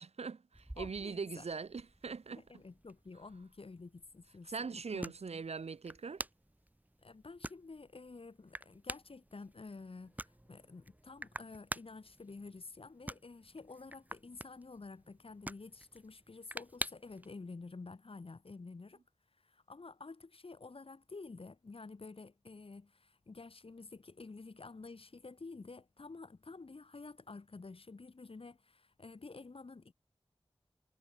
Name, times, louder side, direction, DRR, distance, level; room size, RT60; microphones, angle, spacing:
voice 1, 0.0-2.6 4.4-6.2, right 5 dB, 85° right, 1.6 m, -41 dB
sound 1, 0.5-17.3, right 1 dB, 15° right, 2.9 m, -49 dB
voice 2, 0.8-1.5 2.3-5.1 7.0-10.2 10.5-19.0 19.4-29.9, left 3 dB, 60° left, 4.1 m, -50 dB
wide cardioid pair, 55°, 11 cm